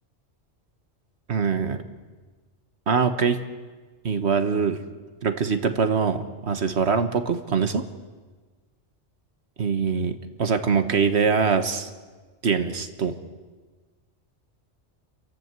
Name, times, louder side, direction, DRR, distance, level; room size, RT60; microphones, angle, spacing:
voice 1, 1.3-1.8 2.9-3.4 4.0-4.8 5.2-7.8 9.6-11.9 12.4-13.1, right 5 dB, 70° right, 8 dB, 1.5 m, -23 dB
30.0 x 11.5 x 8.1 m, 1.4 s
omnidirectional pair, 1.2 m